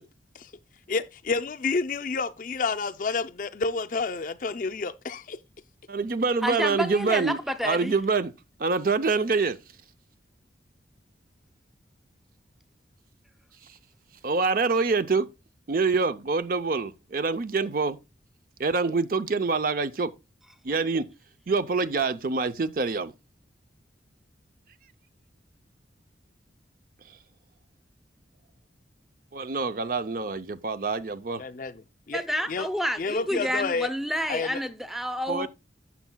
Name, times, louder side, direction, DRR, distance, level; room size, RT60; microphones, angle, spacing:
voice 1, 0.9-5.4 31.4-32.2 32.5-32.7 33.0-33.9 34.3-34.6, left 4 dB, 45° left, 0.5 m, -29 dB
voice 2, 5.9-8.3 8.6-9.6 14.2-15.3 15.7-18.0 18.6-20.1 20.6-21.0 21.5-23.1 29.3-31.4 35.3-35.5, right 4 dB, 50° right, 0.5 m, -26 dB
voice 3, 6.4-7.9 32.1-35.5, equal, ahead, 0.6 m, -29 dB
12.0 x 7.0 x 2.2 m
head